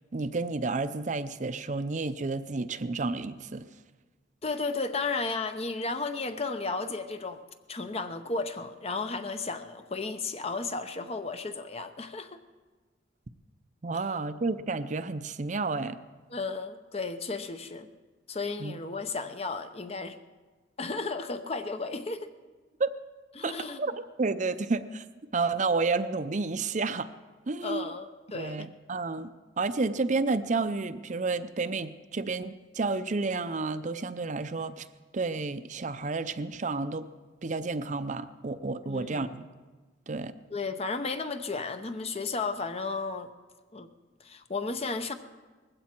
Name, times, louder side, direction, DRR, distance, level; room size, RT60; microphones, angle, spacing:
voice 1, 0.1-3.6 13.8-16.0 18.6-18.7 22.8-22.9 23.4-23.9 24.2-25.0 25.3-27.1 27.5-27.9 28.3-29.3 29.6-34.9 35.1-37.1 37.4-39.4 40.1-40.3, right 3 dB, 40° right, 11 dB, 0.6 m, -30 dB
voice 2, 4.4-7.4 7.7-12.4 13.9-14.0 16.3-17.9 18.3-20.2 20.8-22.3 23.4-23.8 27.6-28.7 38.8-39.3 40.5-43.3 43.7-43.9 44.2-45.1, left 3 dB, 35° left, 9 dB, 0.8 m, -34 dB
19.5 x 15.5 x 4.5 m, 1.4 s
head